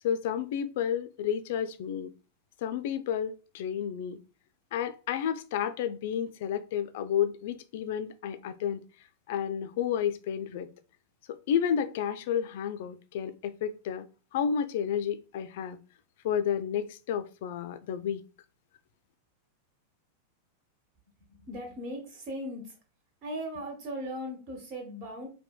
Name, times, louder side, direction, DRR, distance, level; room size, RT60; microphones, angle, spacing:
voice 1, 0.0-2.1 2.6-4.2 4.7-8.8 9.3-10.7 11.3-14.1 14.3-15.8 16.2-18.2, left 8 dB, 50° left, 0.3 m, -31 dB
voice 2, 21.3-22.8 23.2-25.3, equal, 40° right, 1.1 m, -38 dB
4.2 x 2.1 x 2.3 m
figure-of-eight pair, 90°, 0 cm